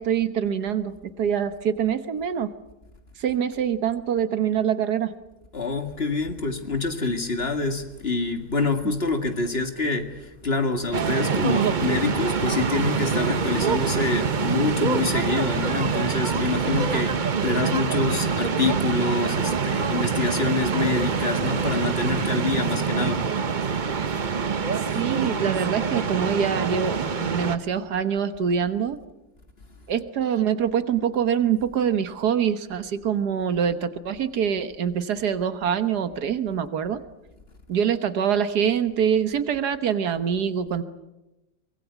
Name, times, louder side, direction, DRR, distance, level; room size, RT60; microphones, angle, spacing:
voice 1, 0.0-2.5 3.2-5.1 24.9-29.0 29.9-37.0 37.7-40.8, right 8 dB, 75° right, 11 dB, 1.7 m, -25 dB
voice 2, 5.5-23.2, left 3 dB, 35° left, 6 dB, 2.2 m, -26 dB
sound 1, 10.9-27.6, right 6 dB, 35° right, 0.8 m, -25 dB
24.0 x 20.5 x 8.2 m, 0.99 s
omnidirectional pair, 1.7 m